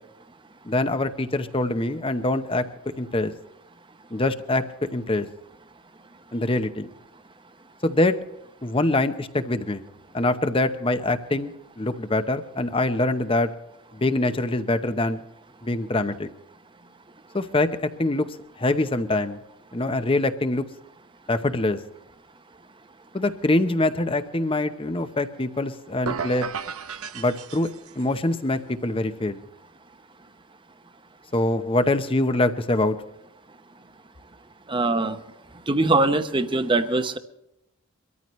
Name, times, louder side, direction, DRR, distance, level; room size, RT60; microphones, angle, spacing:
voice 1, 0.6-2.7 3.0-3.3 4.1-4.7 4.9-5.3 6.3-6.9 7.8-8.2 8.6-9.8 10.1-13.5 13.9-15.2 15.6-16.3 17.3-17.7 18.0-18.3 18.6-19.4 19.7-20.6 21.3-21.8 23.1-26.5 27.1-27.7 28.0-29.4 31.3-33.0, left 2 dB, 25° left, 10 dB, 0.8 m, -24 dB
sound 1, 26.1-28.2, right 6 dB, 80° right, 0.8 m, -33 dB
voice 2, 34.7-35.2 35.7-37.2, right 2 dB, 20° right, 9 dB, 0.8 m, -22 dB
23.5 x 13.5 x 3.1 m, 0.85 s
head